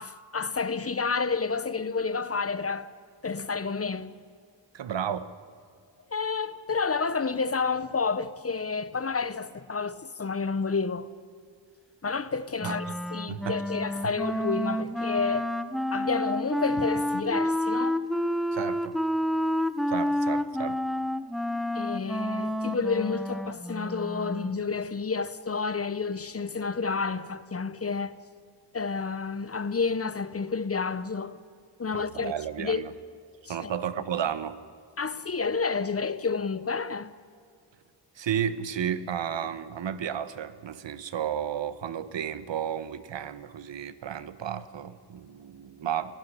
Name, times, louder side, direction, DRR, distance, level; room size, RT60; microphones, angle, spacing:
voice 1, 0.0-2.9 3.2-4.2 6.1-11.1 12.0-12.8 13.1-15.5 15.9-18.0 21.7-28.2 28.7-31.4 31.8-32.3 32.6-32.9 33.5-33.7 35.0-37.2, left 4 dB, 30° left, 0.9 m, -30 dB
voice 2, 4.7-5.4 12.6-12.9 13.3-13.6 14.0-14.1 18.5-19.0 19.9-20.8 31.9-32.9 33.5-34.6 38.2-46.2, right 9 dB, 75° right, 1.2 m, -33 dB
Wind instrument woodwind instrument, 12.6-24.6, equal, ahead, 0.8 m, -29 dB
20.5 x 15.5 x 9.9 m
cardioid pair, 90°, 45 cm